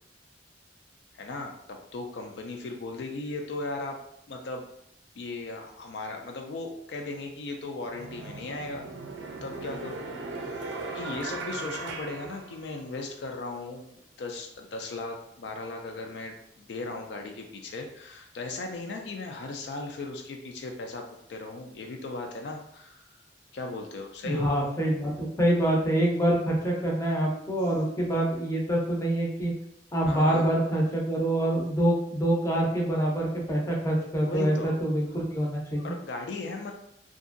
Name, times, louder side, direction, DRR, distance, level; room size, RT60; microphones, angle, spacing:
voice 1, 1.1-4.0 4.3-4.7 5.2-8.8 9.4-10.0 10.4-10.6 10.9-23.0 23.5-24.7 30.1-30.6 34.2-34.8 35.8-36.7, left 3 dB, 65° left, 3 dB, 0.4 m, -37 dB
sound 1, 7.2-7.3 7.9-13.1, right 3 dB, 90° right, 0.5 m, -38 dB
voice 2, 24.2-29.5 29.9-35.9, right 1 dB, 15° left, -2 dB, 0.5 m, -26 dB
2.7 x 2.5 x 2.5 m, 0.74 s
head